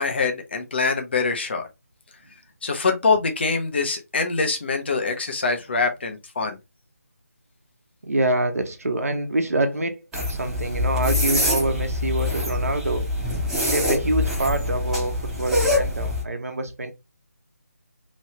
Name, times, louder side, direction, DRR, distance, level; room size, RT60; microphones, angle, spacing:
voice 1, 0.0-1.7 2.6-6.6, left 4 dB, 45° left, 0.8 m, -24 dB
voice 2, 8.0-13.1 13.6-16.9, right 2 dB, 65° right, 1.0 m, -26 dB
sound 1, 10.1-16.2, left 2 dB, 5° right, 0.9 m, -24 dB
3.1 x 2.7 x 3.0 m
figure-of-eight pair, 155°, 8 cm